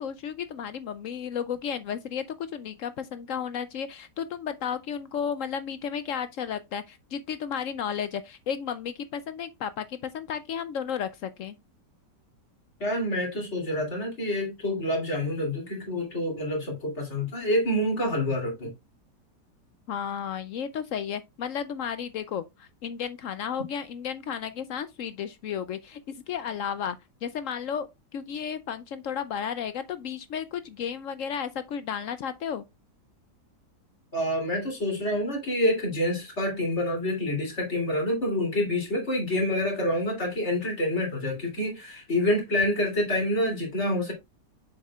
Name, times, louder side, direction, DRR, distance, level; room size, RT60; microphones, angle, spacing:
voice 1, 0.0-11.5 19.9-26.0 26.3-27.9 28.1-32.6, left 8 dB, 75° left, 0.7 m, -33 dB
voice 2, 12.8-18.7 34.1-44.1, left 1 dB, 40° left, 3.1 m, -27 dB
7.3 x 6.5 x 2.3 m
omnidirectional pair, 1.9 m